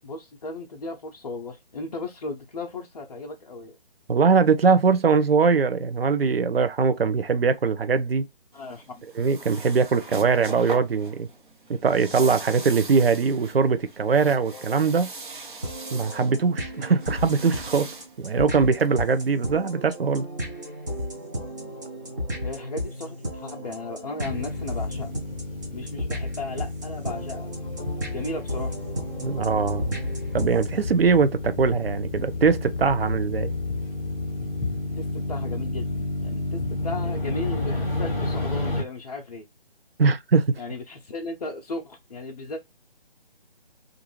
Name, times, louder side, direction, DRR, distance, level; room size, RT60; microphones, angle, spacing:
voice 1, 0.0-3.8 8.5-9.0 14.5-14.7 22.4-25.2 25.7-27.5 28.1-28.7 35.0-39.5 40.6-42.6, left 3 dB, 45° left, 0.5 m, -36 dB
voice 2, 4.1-8.2 9.1-11.3 11.7-15.1 15.9-17.9 18.2-20.3 29.2-30.0 30.3-33.5 40.0-40.5, right 5 dB, 80° right, 0.5 m, -21 dB
sound 1, 8.5-19.3, right 3 dB, 60° right, 0.9 m, -41 dB
sound 2, 15.6-30.9, equal, 20° right, 0.5 m, -34 dB
sound 3, 24.2-38.8, left 2 dB, 10° left, 0.8 m, -31 dB
2.5 x 2.3 x 3.0 m
figure-of-eight pair, 150°, 29 cm